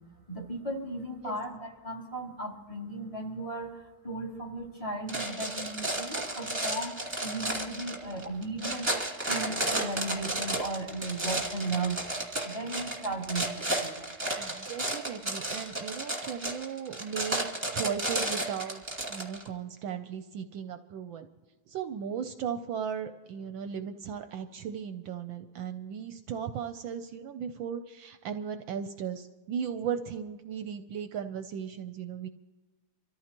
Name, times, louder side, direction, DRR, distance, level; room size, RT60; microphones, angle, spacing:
voice 1, 0.3-8.9 9.3-12.0 12.4-14.3, right 2 dB, 15° left, -1 dB, 2.5 m, -36 dB
sound 1, 5.1-19.5, right 1 dB, 15° right, 2.1 m, -32 dB
voice 2, 14.4-17.5 17.7-18.8 19.1-21.3 21.7-32.3, right 7 dB, 70° right, 9 dB, 1.3 m, -36 dB
26.0 x 14.0 x 2.9 m, 1.2 s
omnidirectional pair, 2.3 m